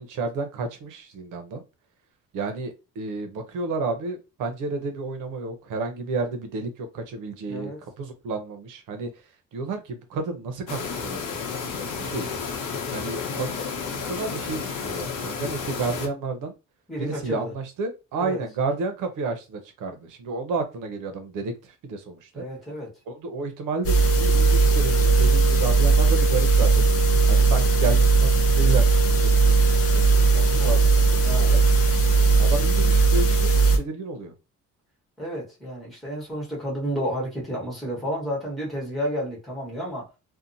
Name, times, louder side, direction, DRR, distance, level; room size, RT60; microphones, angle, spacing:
voice 1, 0.0-1.6 2.3-7.7 8.0-9.1 9.5-12.3 12.9-16.5 17.0-22.4 23.1-26.9 27.3-31.6 32.4-33.5 33.8-34.3, right 3 dB, 80° right, 0.8 m, -31 dB
voice 2, 7.5-7.8 16.9-17.5 18.2-18.4 22.3-22.9 30.6-30.7 31.2-31.6 35.2-40.1, equal, ahead, 1.2 m, -31 dB
sound 1, 10.7-16.1, left 6 dB, 75° left, 0.9 m, -31 dB
sound 2, 23.8-33.8, right 4 dB, 50° left, 0.9 m, -18 dB
2.7 x 2.2 x 2.6 m
cardioid pair, 155°, 31 cm